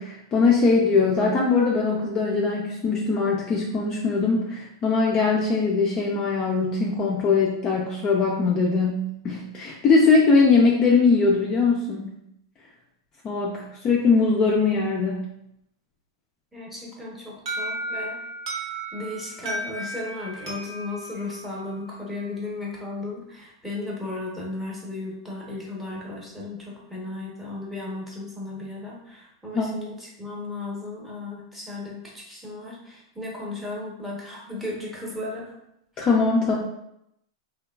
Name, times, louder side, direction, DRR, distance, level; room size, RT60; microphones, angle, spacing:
voice 1, 0.0-12.1 13.2-15.2 29.5-29.7 36.0-36.6, left 4 dB, 25° left, -3 dB, 0.3 m, -21 dB
voice 2, 16.5-18.2 18.9-35.4, left 2 dB, 5° right, -5 dB, 0.8 m, -35 dB
Alarm, 17.5-22.2, right 1 dB, 75° right, 0.7 m, -34 dB
3.0 x 2.2 x 2.2 m, 0.79 s
hypercardioid pair, 140°, 3 cm